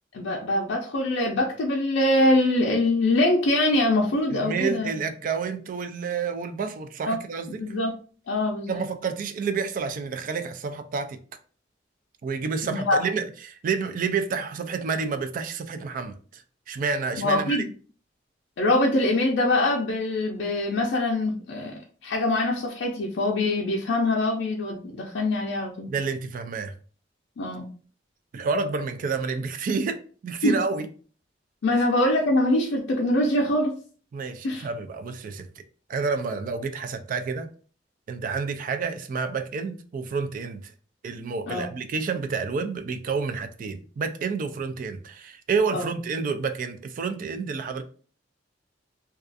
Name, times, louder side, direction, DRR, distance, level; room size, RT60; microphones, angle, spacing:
voice 1, 0.1-5.0 7.1-7.2 7.6-7.9 8.3-8.8 12.6-13.0 17.2-17.7 18.6-21.7 22.0-25.9 27.4-27.7 30.4-30.6 31.6-33.7 34.4-34.7 41.5-41.7 45.7-45.9, left 1 dB, 80° left, 0.4 m, -23 dB
voice 2, 4.3-7.7 8.7-11.2 12.2-17.7 25.9-26.7 28.3-30.9 31.8-31.9 34.1-35.5 35.9-37.5 38.1-40.7 41.0-47.8, right 5 dB, 45° right, 0.3 m, -29 dB
2.3 x 2.3 x 2.5 m
head